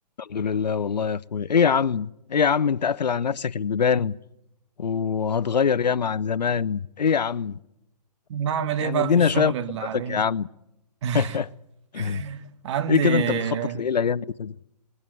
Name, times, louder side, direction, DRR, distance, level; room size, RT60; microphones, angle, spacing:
voice 1, 0.2-4.2 4.8-7.6 8.8-9.5 9.9-10.5 11.1-11.5 11.9-12.2 12.9-13.4 13.7-14.5, left 6 dB, 90° left, 0.8 m, -23 dB
voice 2, 8.3-10.2 11.0-11.4 11.9-13.8, right 8 dB, 45° right, 1.6 m, -28 dB
21.5 x 19.0 x 9.2 m
hypercardioid pair, 145°, 21 cm